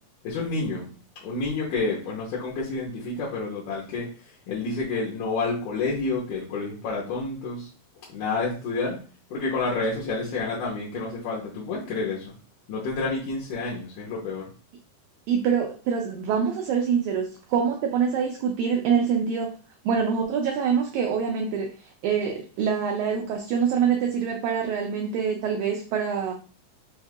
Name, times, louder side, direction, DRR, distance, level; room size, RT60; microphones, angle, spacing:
voice 1, 0.2-0.9 1.2-4.1 4.5-7.7 8.1-9.0 9.3-12.3 12.7-14.5, left 3 dB, 75° left, -5 dB, 2.4 m, -29 dB
voice 2, 15.3-19.5 19.8-21.7 22.0-26.3, right 7 dB, 90° right, 2 dB, 1.6 m, -25 dB
6.3 x 2.6 x 2.4 m, 0.37 s
omnidirectional pair, 4.0 m